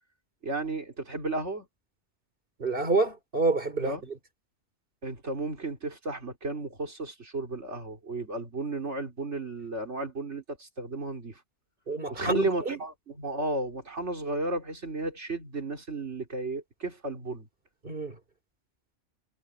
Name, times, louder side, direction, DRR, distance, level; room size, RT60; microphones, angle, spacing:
voice 1, 0.4-1.7 3.8-4.0 5.0-11.4 12.1-17.5, right 2 dB, 70° right, 3.9 m, -33 dB
voice 2, 2.6-4.1 11.9-12.8 17.8-18.1, right 3 dB, 50° right, 3.2 m, -28 dB
omnidirectional pair, 1.2 m